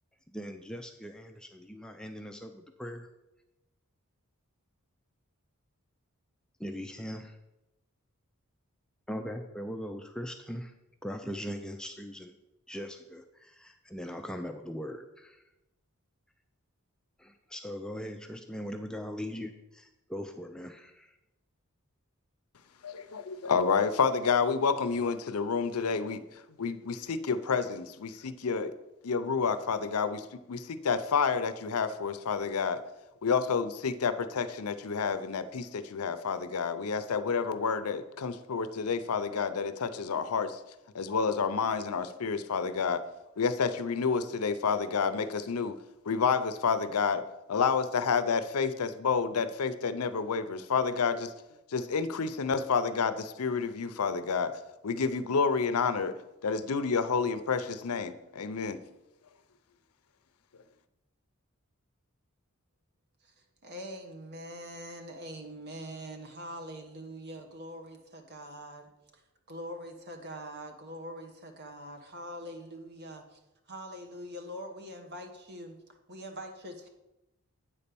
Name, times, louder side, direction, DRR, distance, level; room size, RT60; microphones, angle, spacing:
voice 1, 0.3-3.1 6.6-7.4 9.1-10.7 11.0-12.4 12.7-15.4 17.2-21.2, equal, 5° left, 4 dB, 0.4 m, -40 dB
voice 2, 22.8-26.2 26.6-28.7 29.0-32.8 33.2-40.6 40.9-43.0 43.4-45.8 46.1-47.2 47.5-51.3 51.7-54.5 54.8-56.1 56.4-58.8, left 5 dB, 85° left, 12 dB, 0.6 m, -29 dB
voice 3, 63.6-69.2 69.5-73.4 73.7-75.8 76.1-76.9, equal, 50° right, 5 dB, 1.2 m, -43 dB
8.8 x 4.2 x 6.9 m, 0.95 s
head